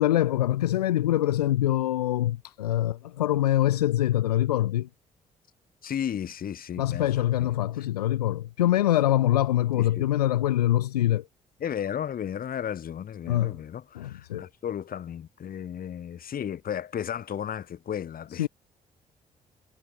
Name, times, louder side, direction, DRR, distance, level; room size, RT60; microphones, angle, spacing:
voice 1, 0.0-4.9 6.8-11.3 13.3-13.6 13.9-14.5 18.4-18.5, left 13 dB, 80° left, 0.5 m, -24 dB
voice 2, 5.8-7.5 9.7-10.1 11.6-18.5, left 9 dB, 50° left, 2.1 m, -34 dB
figure-of-eight pair, 45°, 20 cm